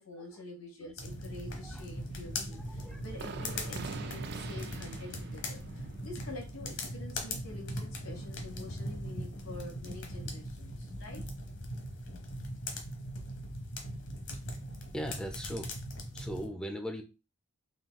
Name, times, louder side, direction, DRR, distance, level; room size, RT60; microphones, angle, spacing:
voice 1, 0.0-5.6 6.0-11.2, left 2 dB, 75° left, 1 dB, 1.6 m, -47 dB
sound 1, 1.0-16.5, left 1 dB, 60° left, 1.0 m, -40 dB
sound 2, 1.1-10.4 10.6-10.7 11.1-11.2, right 4 dB, 55° right, 0.4 m, -47 dB
voice 2, 2.5-3.0 3.5-3.6 14.9-15.7 16.1-17.0, equal, 5° left, 5 dB, 0.4 m, -39 dB
4.0 x 2.7 x 3.5 m, 0.29 s
head